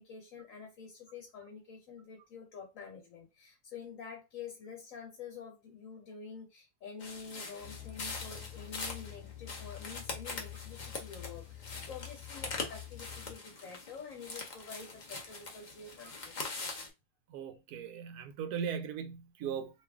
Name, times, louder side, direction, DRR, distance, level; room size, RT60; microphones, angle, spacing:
voice 1, 0.0-16.4, left 6 dB, 60° left, 1.2 m, -48 dB
sound 1, 7.0-16.9, left 3 dB, 45° left, 0.6 m, -43 dB
sound 2, 7.6-13.4, left 14 dB, 5° right, 1.0 m, -48 dB
voice 2, 17.3-19.7, right 7 dB, 85° right, 1.1 m, -38 dB
3.0 x 2.4 x 3.4 m
omnidirectional pair, 1.6 m